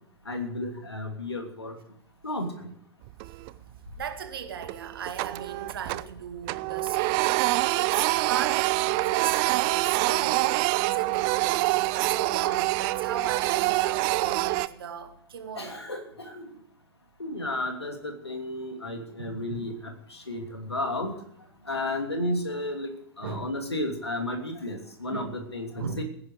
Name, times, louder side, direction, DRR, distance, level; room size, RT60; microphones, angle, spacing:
voice 1, 0.2-1.8 2.2-2.7 15.5-16.5 17.2-21.1 21.6-22.9 23.2-26.0, left 1 dB, 85° left, 4 dB, 2.9 m, -33 dB
Printer, 3.1-3.7 4.0-4.2 4.6-6.2 6.4-14.7, right 20 dB, 35° right, 0.6 m, -26 dB
voice 2, 4.0-15.8 19.2-19.7 23.2-23.5 25.1-25.3 25.7-26.0, right 7 dB, 60° right, 6 dB, 2.2 m, -37 dB
17.5 x 10.5 x 4.9 m, 0.68 s
figure-of-eight pair, 105°, 13 cm